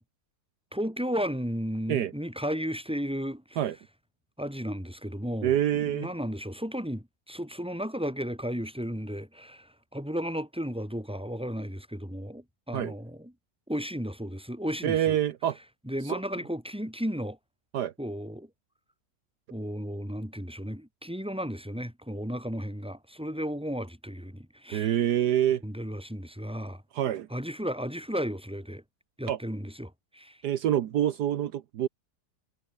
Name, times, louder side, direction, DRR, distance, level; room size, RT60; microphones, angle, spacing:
voice 1, 0.7-3.6 4.4-5.5 5.9-13.3 13.7-15.2 15.9-17.4 18.0-18.5 19.5-24.9 25.6-26.8 27.3-28.8 29.2-30.4, equal, 5° right, 6.1 m, -34 dB
voice 2, 5.4-6.1 12.7-12.9 14.8-15.6 16.0-16.2 17.7-17.9 24.7-25.6 26.9-27.3 29.3-29.4 30.4-31.9, right 11 dB, 75° right, 1.5 m, -26 dB
omnidirectional pair, 1.8 m